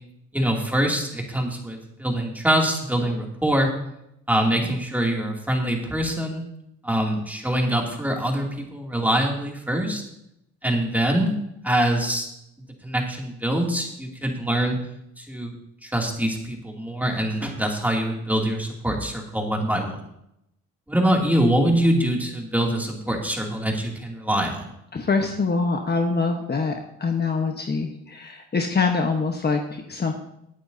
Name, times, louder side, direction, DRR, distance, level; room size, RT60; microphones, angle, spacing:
voice 1, 0.3-3.7 4.3-6.4 6.8-10.0 10.6-11.3 11.6-12.3 12.8-14.8 15.2-15.5 15.8-20.0 20.9-24.7, right 1 dB, 5° right, 0 dB, 2.7 m, -24 dB
voice 2, 24.9-30.1, left 4 dB, 35° left, 3 dB, 1.2 m, -24 dB
19.5 x 9.1 x 2.8 m, 0.80 s
cardioid pair, 90°, 30 cm